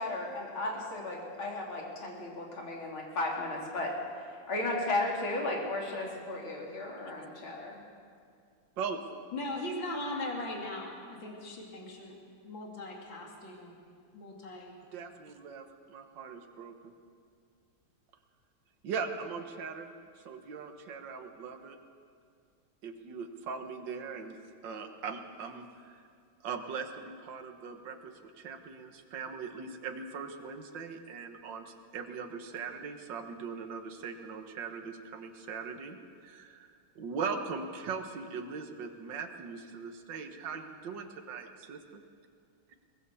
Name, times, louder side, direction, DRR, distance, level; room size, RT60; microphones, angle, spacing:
voice 1, 0.0-7.8, left 2 dB, 90° left, -1 dB, 4.1 m, -35 dB
voice 2, 9.3-12.2 12.4-13.8 14.1-14.8, left 1 dB, 70° left, -1 dB, 3.5 m, -39 dB
voice 3, 14.9-16.7 18.8-21.8 22.8-24.4 24.6-26.0 26.4-36.0 36.2-41.8, right 5 dB, 65° right, 5 dB, 2.0 m, -40 dB
23.0 x 19.0 x 7.0 m, 2.2 s
omnidirectional pair, 2.2 m